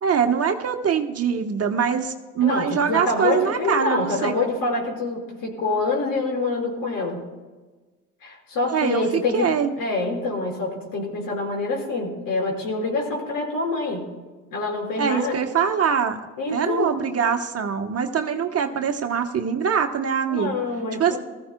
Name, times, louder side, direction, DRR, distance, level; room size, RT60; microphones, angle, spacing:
voice 1, 0.0-4.3 8.7-9.0 9.3-9.7 15.0-16.2 16.5-20.6 21.0-21.2, right 7 dB, 40° right, 5 dB, 1.2 m, -23 dB
voice 2, 2.4-7.2 8.2-14.1 14.5-15.4 16.4-17.0 18.7-18.8 20.3-21.2, left 3 dB, 65° left, -1 dB, 5.3 m, -26 dB
20.5 x 15.0 x 2.3 m, 1.3 s
hypercardioid pair, 65°, 37 cm